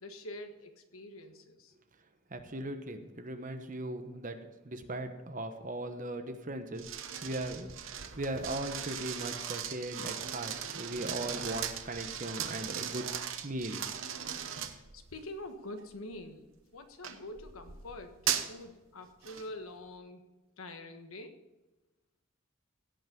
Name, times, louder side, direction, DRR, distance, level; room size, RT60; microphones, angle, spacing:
voice 1, 0.0-1.7 14.9-16.4 16.7-18.2 18.5-20.3 20.6-21.4, left 1 dB, 85° left, 7 dB, 1.3 m, -45 dB
voice 2, 2.3-4.4 4.6-7.7 8.2-13.1 13.4-13.8, right 1 dB, 40° right, 7 dB, 1.1 m, -38 dB
sound 1, 6.8-15.2 15.8-16.1 17.0-18.6 19.2-19.5, right 9 dB, 70° right, 0.9 m, -38 dB
17.0 x 5.7 x 5.2 m, 1.1 s
head